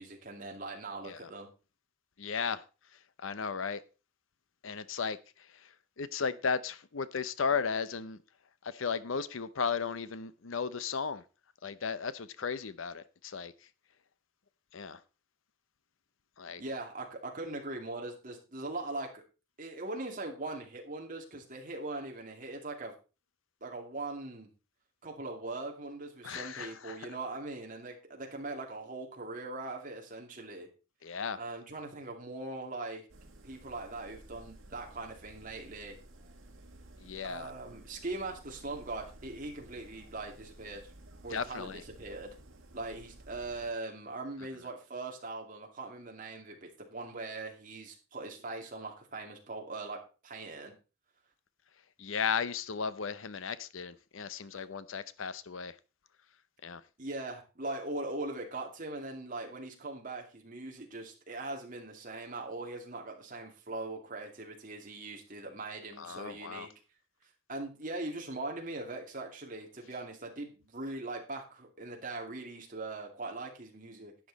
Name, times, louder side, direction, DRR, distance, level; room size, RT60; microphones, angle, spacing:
voice 1, 0.0-1.5 16.6-19.2 19.6-22.9 23.6-24.5 25.0-30.7 31.3-33.0 33.4-36.0 37.2-40.9 41.2-42.3 42.7-50.7 57.0-66.7 67.5-74.1, right 2 dB, 40° right, 2.5 m, -41 dB
voice 2, 2.2-2.6 2.9-3.8 4.6-8.2 8.6-11.2 11.6-13.5 14.7-15.0 16.4-16.6 26.2-27.0 31.0-31.4 37.0-37.5 41.3-41.8 52.0-55.8 56.6-56.8 66.0-66.7, left 6 dB, 80° left, 0.7 m, -35 dB
sound 1, 33.1-43.7, right 1 dB, 80° right, 2.0 m, -54 dB
11.5 x 8.5 x 4.0 m
head